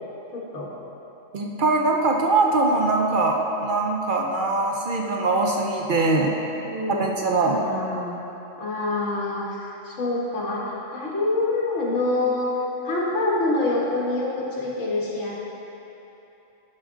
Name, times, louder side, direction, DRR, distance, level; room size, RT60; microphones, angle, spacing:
voice 1, 0.3-0.7 6.6-7.0 7.5-8.2 8.6-12.5 12.8-15.3, left 2 dB, 65° left, -5 dB, 1.7 m, -26 dB
voice 2, 1.3-6.3 6.9-7.6, right 3 dB, 55° right, 0 dB, 0.6 m, -22 dB
12.0 x 4.9 x 3.8 m, 3.0 s
omnidirectional pair, 1.3 m